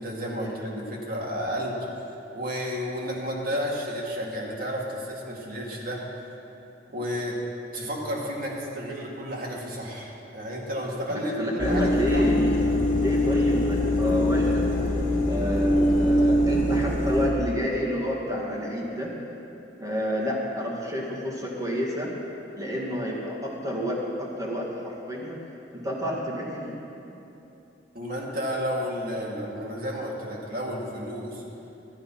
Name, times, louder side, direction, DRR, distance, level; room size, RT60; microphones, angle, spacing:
voice 1, 0.0-1.8 2.4-6.0 6.9-7.4 7.7-11.3 11.7-12.2 27.9-31.4, equal, 55° right, -3 dB, 2.1 m, -32 dB
voice 2, 11.1-12.5 13.0-14.7 15.2-19.1 19.8-22.1 22.5-25.4 25.7-26.8, equal, 20° right, -4 dB, 2.2 m, -29 dB
sound 1, 11.6-17.3, left 1 dB, 45° left, 1.8 m, -23 dB
13.0 x 9.5 x 5.7 m, 2.9 s
head